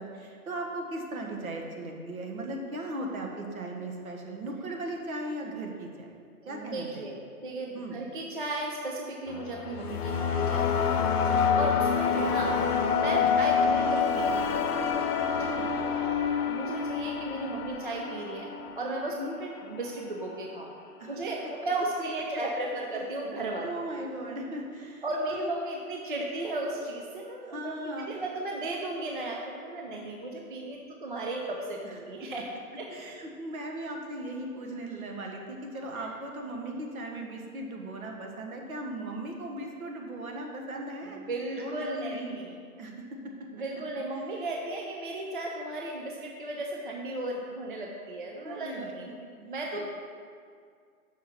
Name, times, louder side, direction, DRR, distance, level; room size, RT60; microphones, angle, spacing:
voice 1, 0.0-6.2 6.4-7.1 7.7-8.0 13.1-13.3 15.2-15.9 19.1-19.3 21.0-21.2 23.6-25.0 25.3-25.5 27.4-28.1 31.8-32.3 32.9-41.2 41.6-42.4 42.8-43.0 44.2-44.3 48.4-49.1 49.7-49.9, right 1 dB, 65° right, 1 dB, 1.4 m, -38 dB
voice 2, 6.4-7.1 7.4-12.5 12.9-14.7 15.3-15.4 15.9-16.2 16.5-18.5 18.8-20.7 21.1-23.7 25.0-27.7 28.1-32.5 32.8-32.9 36.0-36.1 41.3-42.6 43.5-49.1 49.4-49.9, right 2 dB, 35° right, 0 dB, 0.4 m, -35 dB
sound 1, 9.3-19.5, left 6 dB, 80° left, 0.8 m, -27 dB
5.7 x 4.8 x 5.8 m, 2.2 s
hypercardioid pair, 165°, 45 cm